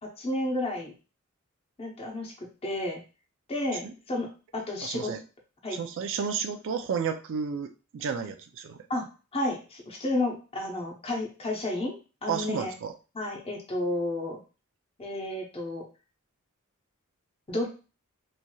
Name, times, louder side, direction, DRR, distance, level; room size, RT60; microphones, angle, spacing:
voice 1, 0.0-0.9 1.8-2.3 2.6-3.0 3.5-5.1 5.6-5.8 8.9-9.0 9.3-12.7 13.1-14.4 15.0-15.8 17.5-17.7, left 1 dB, 25° left, 0 dB, 0.7 m, -31 dB
voice 2, 4.8-5.2 5.7-8.8 12.3-12.9, right 6 dB, 60° right, 7 dB, 0.4 m, -32 dB
3.1 x 2.6 x 2.2 m, 0.33 s
head